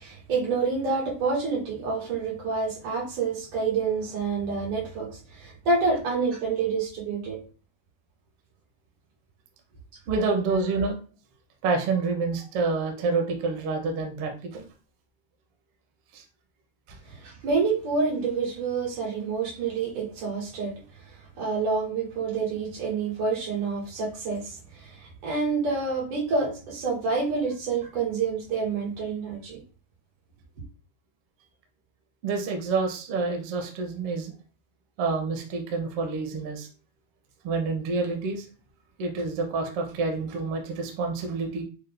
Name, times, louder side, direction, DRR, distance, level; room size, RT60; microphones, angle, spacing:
voice 1, 0.0-7.4 17.1-20.7 21.4-29.6, right 4 dB, 85° right, 3.2 m, -28 dB
voice 2, 10.1-11.0 11.6-14.6 16.1-16.2 16.9-17.0 32.2-34.3 35.0-36.7 37.4-38.4 39.0-41.6, right 4 dB, 65° right, 1.5 m, -28 dB
5.9 x 2.0 x 3.3 m
omnidirectional pair, 3.5 m